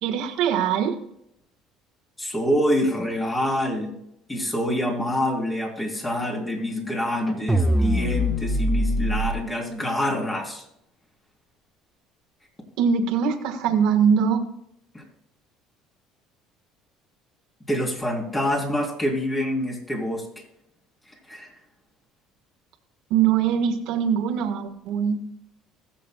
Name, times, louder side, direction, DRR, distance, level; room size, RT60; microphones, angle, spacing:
voice 1, 0.0-1.0 12.8-14.4 23.1-25.2, right 7 dB, 75° right, 5 dB, 1.5 m, -22 dB
voice 2, 2.2-3.9 4.3-10.7 14.9-15.0 17.7-20.4 21.1-21.5, left 1 dB, 15° left, -1 dB, 3.6 m, -26 dB
sound 1, 7.5-9.3, equal, 5° right, 1.2 m, -22 dB
21.0 x 7.3 x 2.3 m, 0.77 s
supercardioid pair, 105°, 0 cm